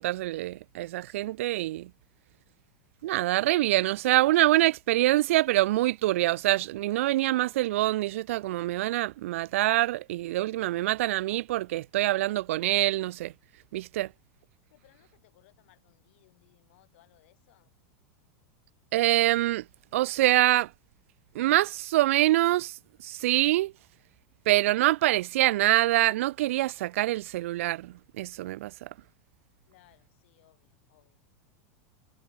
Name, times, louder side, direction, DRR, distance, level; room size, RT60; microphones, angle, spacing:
voice 1, 0.0-1.9 3.0-13.3 13.7-14.1 18.9-19.6 19.9-20.7 21.3-22.7 23.0-23.7 24.5-28.9, right 16 dB, 65° right, 0.5 m, -25 dB
voice 2, 14.7-17.7 29.6-31.2, left 18 dB, 55° left, 7.9 m, -63 dB
supercardioid pair, 175°, 8 cm